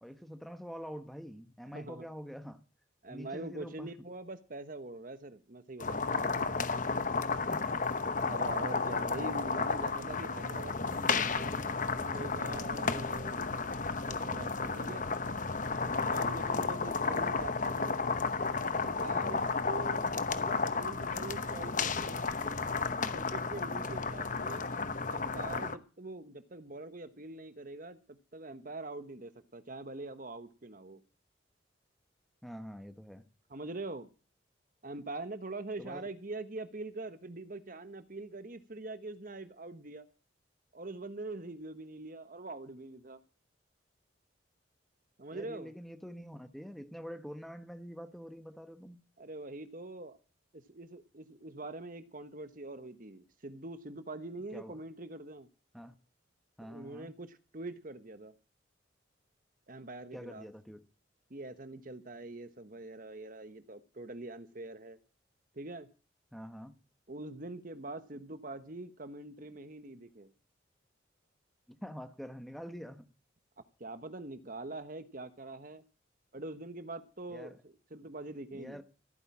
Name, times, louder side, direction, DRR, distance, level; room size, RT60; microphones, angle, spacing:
voice 1, 0.0-2.6 3.1-3.9 7.4-7.9 12.7-13.0 16.2-16.6 19.2-19.5 23.7-24.0 32.4-33.3 35.8-36.1 45.3-49.0 54.5-54.8 55.7-56.0 56.6-57.1 60.1-60.8 66.3-66.7 71.7-73.1 77.3-77.6 78.5-78.8, equal, ahead, 1.2 m, -46 dB
voice 2, 1.7-2.1 3.0-6.6 8.2-11.5 11.9-13.5 13.9-15.1 15.8-18.0 18.7-20.0 20.3-22.2 22.9-24.7 25.1-31.0 33.5-34.1 34.8-40.1 40.7-43.2 45.2-45.7 49.2-50.2 50.5-55.5 56.6-58.3 59.7-60.5 61.3-65.0 65.5-65.9 67.1-70.3 73.8-75.8 76.3-78.8, right 2 dB, 45° right, 1.2 m, -44 dB
sound 1, 5.8-25.7, left 4 dB, 40° left, 1.0 m, -33 dB
15.5 x 9.2 x 7.2 m
head